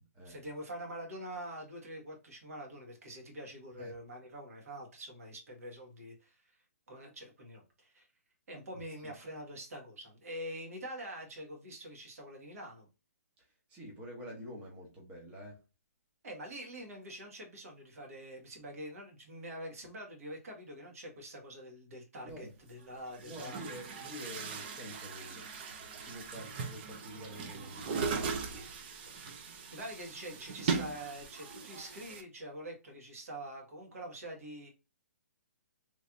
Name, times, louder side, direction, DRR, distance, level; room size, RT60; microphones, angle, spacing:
voice 1, 0.3-6.5 6.9-8.1 8.5-12.9 16.2-23.6 29.7-34.7, right 1 dB, 65° right, 1 dB, 1.7 m, -45 dB
voice 2, 13.4-15.6 22.2-22.5 23.2-25.5 26.0-28.7, equal, 15° right, -3 dB, 0.8 m, -47 dB
Chatter / Gurgling / Tap, 22.3-22.4 23.1-32.2, right 5 dB, 40° right, 0.6 m, -39 dB
3.2 x 3.2 x 2.5 m, 0.30 s
hypercardioid pair, 155°, 9 cm